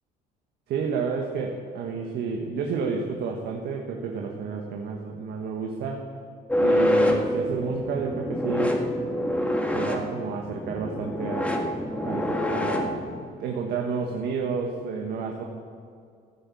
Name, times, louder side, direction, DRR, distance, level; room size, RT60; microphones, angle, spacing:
voice 1, 0.7-6.1 6.6-8.8 9.7-11.6 12.0-13.0 13.4-15.4, right 5 dB, 75° right, 1 dB, 1.5 m, -30 dB
sound 1, 6.5-13.2, left 1 dB, 5° left, 1.9 m, -26 dB
15.5 x 9.3 x 7.1 m, 2.3 s
cardioid pair, 110°, 17 cm